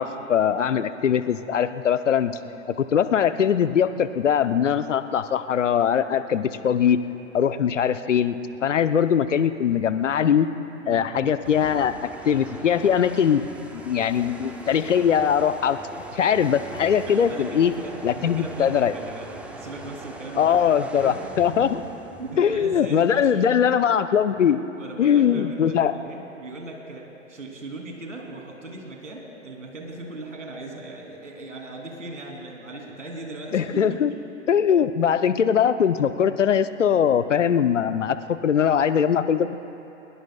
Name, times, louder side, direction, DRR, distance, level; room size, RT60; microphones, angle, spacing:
voice 1, 0.0-2.4 2.8-7.0 7.3-8.4 8.6-10.5 10.9-11.9 12.2-13.4 13.8-15.8 16.1-17.7 18.0-18.9 20.4-21.8 22.4-24.6 25.0-25.9 33.5-34.1 34.5-39.6, left 8 dB, 70° left, 12 dB, 0.7 m, -21 dB
voice 2, 10.8-11.4 17.1-21.8 22.1-23.5 24.8-34.2, right 2 dB, 75° right, 0 dB, 3.0 m, -38 dB
sound 1, 11.4-22.8, right 2 dB, 5° right, 0.5 m, -41 dB
21.5 x 20.5 x 2.3 m, 2.9 s
figure-of-eight pair, 105°, 38 cm